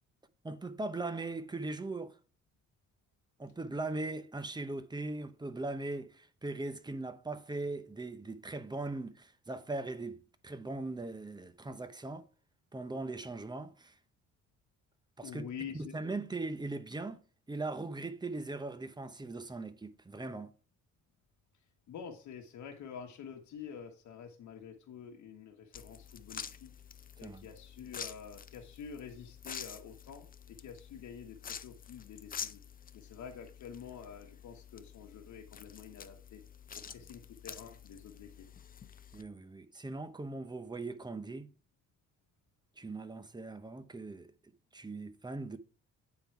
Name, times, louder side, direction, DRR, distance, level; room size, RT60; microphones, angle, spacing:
voice 1, 0.4-2.2 3.4-12.2 12.7-13.9 15.2-15.4 15.7-17.2 17.5-20.5 27.2-27.4 39.1-41.5 42.8-44.3 44.7-45.6, right 2 dB, 15° right, 0.8 m, -39 dB
voice 2, 15.2-15.9 21.9-26.7 27.2-32.6 32.9-36.4 36.9-38.4, left 7 dB, 75° left, 1.2 m, -48 dB
sound 1, 25.7-39.2, left 7 dB, 30° left, 0.5 m, -48 dB
8.8 x 3.8 x 4.6 m
cardioid pair, 90°, 30 cm